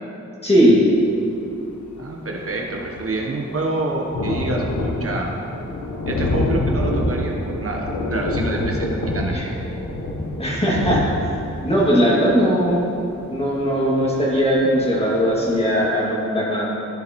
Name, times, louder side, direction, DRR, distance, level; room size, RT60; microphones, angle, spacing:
voice 1, 0.4-0.8 9.3-9.4 10.4-11.1 11.6-12.8 13.3-16.7, equal, 20° left, -6 dB, 2.1 m, -18 dB
Thunder, 1.7-1.8 2.0-14.6 15.1-15.2 15.5-15.6, left 2 dB, 80° left, 1.0 m, -27 dB
voice 2, 2.0-5.3 6.1-9.4, right 2 dB, 50° right, 0 dB, 1.0 m, -27 dB
14.0 x 7.4 x 3.0 m, 2.8 s
wide cardioid pair, 140°, 29 cm